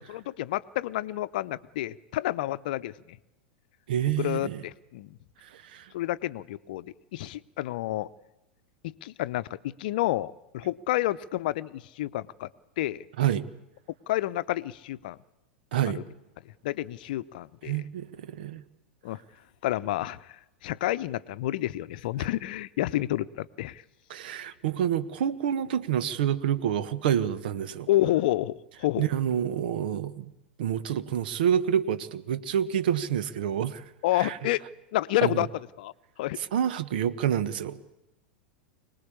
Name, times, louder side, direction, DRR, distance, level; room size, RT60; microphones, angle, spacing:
voice 1, 0.0-3.2 4.1-5.2 5.9-6.9 7.1-8.1 8.8-12.5 12.8-13.0 14.1-15.2 16.0-16.1 16.6-17.9 19.0-19.2 19.6-20.3 20.6-23.8 27.9-29.1 34.0-34.6 34.9-35.5 35.8-35.9 36.2-36.4, left 15 dB, 55° left, 0.8 m, -29 dB
voice 2, 3.9-4.6 5.4-5.9 13.2-13.4 15.7-16.0 17.7-18.6 24.1-27.9 29.0-30.3 30.6-33.8 34.2-34.5 35.2-35.5 36.5-37.8, right 9 dB, 60° right, 1.3 m, -28 dB
25.0 x 20.0 x 8.5 m
figure-of-eight pair, 90°, 6 cm